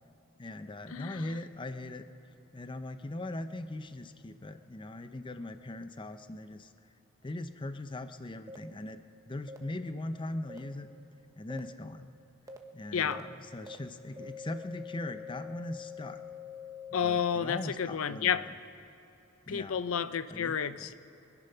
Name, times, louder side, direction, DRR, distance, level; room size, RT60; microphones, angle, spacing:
voice 1, 0.4-2.0 2.5-6.7 7.2-10.9 11.4-12.1 12.7-16.2 16.9-18.5 19.5-19.8 20.3-20.9, left 1 dB, 25° left, 10 dB, 0.6 m, -40 dB
voice 2, 0.9-1.2 12.9-13.2 16.9-18.4 19.5-20.9, left 7 dB, 80° left, 13 dB, 0.5 m, -30 dB
sound 1, 8.5-8.6 9.5-9.6 10.5-10.6 11.5-11.6 12.5-12.6 13.1-13.2 13.7-13.8 14.2-17.3, left 6 dB, 15° right, 1.0 m, -45 dB
25.0 x 9.9 x 5.6 m, 2.9 s
head